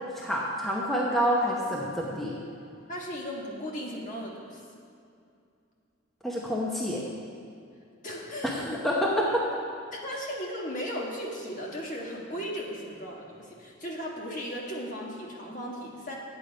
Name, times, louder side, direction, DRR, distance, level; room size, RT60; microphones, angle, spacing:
voice 1, 0.2-2.3 6.2-7.0 8.4-8.5 8.8-9.4, equal, ahead, -4 dB, 0.8 m, -27 dB
voice 2, 2.9-4.6 8.0-8.8 9.9-16.1, equal, 40° left, -2 dB, 1.5 m, -36 dB
9.3 x 8.6 x 5.1 m, 2.4 s
head